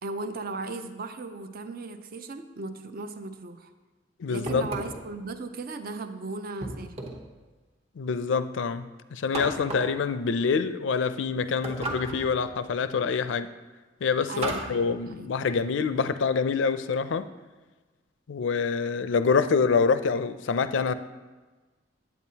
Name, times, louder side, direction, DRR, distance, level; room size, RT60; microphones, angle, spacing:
voice 1, 0.0-3.7 4.3-7.1 12.3-12.4 14.3-15.3, right 3 dB, 50° right, 9 dB, 0.5 m, -37 dB
voice 2, 4.2-4.7 8.0-13.5 14.0-17.3 18.3-20.9, left 5 dB, 75° left, 12 dB, 0.4 m, -26 dB
sound 1, 4.5-5.1 6.6-7.3 9.3-10.0 11.6-12.4 14.4-14.8, right 2 dB, 35° right, 0.9 m, -34 dB
8.8 x 8.3 x 2.8 m, 1.3 s
head